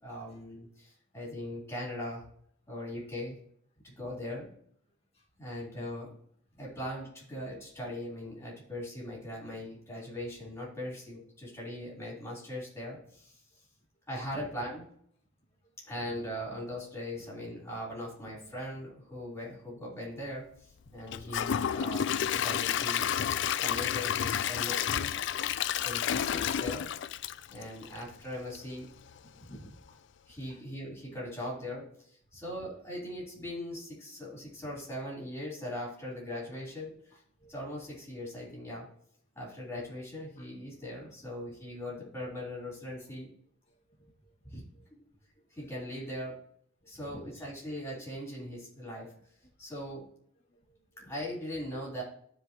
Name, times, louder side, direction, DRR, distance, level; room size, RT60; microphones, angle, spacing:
voice 1, 0.0-2.3 2.7-3.3 3.8-4.5 5.4-6.1 6.6-13.6 14.1-14.8 15.9-23.1 23.6-25.1 25.8-26.9 27.5-28.9 30.3-37.2 37.5-38.9 39.3-43.3 44.4-44.6 44.9-45.0 45.5-46.4 46.8-49.1 49.6-50.1 51.0-52.0, left 1 dB, 15° left, -5 dB, 3.8 m, -40 dB
Gurgling / Toilet flush / Trickle dribble, 21.1-28.1 28.5-28.6 29.1-29.2, left 9 dB, 60° left, 0.3 m, -30 dB
voice 2, 29.2-30.0 30.5-30.6 37.4-37.5 40.4-40.9 44.0-44.1 44.7-44.8 46.8-47.3 50.7-51.1, right 1 dB, 30° left, -4 dB, 1.9 m, -53 dB
15.0 x 5.0 x 3.0 m, 0.64 s
head